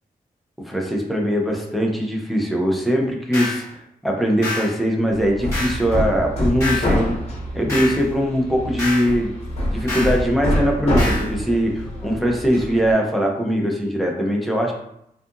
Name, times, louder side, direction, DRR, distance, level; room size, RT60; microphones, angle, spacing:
voice 1, 0.6-3.6 4.0-7.2 7.5-9.3 9.7-14.7, equal, ahead, -1 dB, 0.4 m, -21 dB
sound 1, 3.3-3.6 4.4-4.7 5.5-5.8 6.6-6.9 7.7-8.0 8.8-9.1 9.9-10.2 11.0-11.3, left 2 dB, 20° left, 1.0 m, -27 dB
Hammer, 5.1-12.9, equal, 45° left, 0.7 m, -26 dB
2.7 x 2.4 x 2.4 m, 0.77 s
wide cardioid pair, 155°, 15 cm